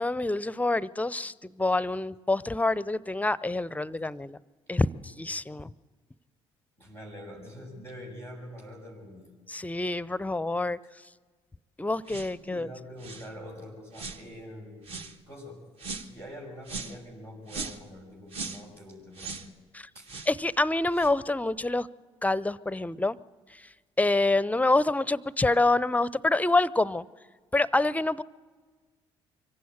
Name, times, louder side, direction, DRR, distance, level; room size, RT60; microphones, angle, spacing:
voice 1, 0.0-4.4 4.7-5.7 9.5-10.8 11.8-12.7 19.7-19.9 20.3-21.9 22.2-23.2 24.0-27.0 27.5-28.2, left 2 dB, 10° left, 20 dB, 0.6 m, -26 dB
voice 2, 6.8-9.3 12.3-15.6 16.0-19.5 19.9-20.1, equal, 80° right, -7 dB, 5.8 m, -45 dB
sound 1, 12.1-12.4 13.0-13.3 13.9-14.2 14.8-15.2 15.8-16.1 16.7-17.0 17.5-17.9 18.3-18.6 19.1-19.5 20.1-20.3 20.9-21.1, right 4 dB, 45° right, 1.3 m, -39 dB
24.5 x 15.5 x 8.5 m, 1.5 s
figure-of-eight pair, 45°, 14 cm